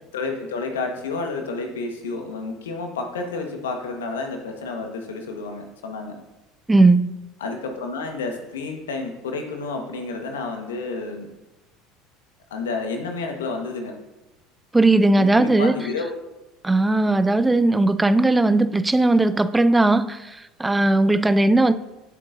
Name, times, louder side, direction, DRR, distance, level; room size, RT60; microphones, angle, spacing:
voice 1, 0.1-6.1 7.4-11.3 12.5-14.0 15.2-16.2 17.0-17.2, left 3 dB, 75° left, 4 dB, 1.4 m, -30 dB
voice 2, 6.7-7.1 14.7-15.8 16.6-21.7, right 2 dB, 10° right, 13 dB, 0.5 m, -18 dB
16.0 x 7.4 x 2.7 m, 0.99 s
figure-of-eight pair, 70°, 0 cm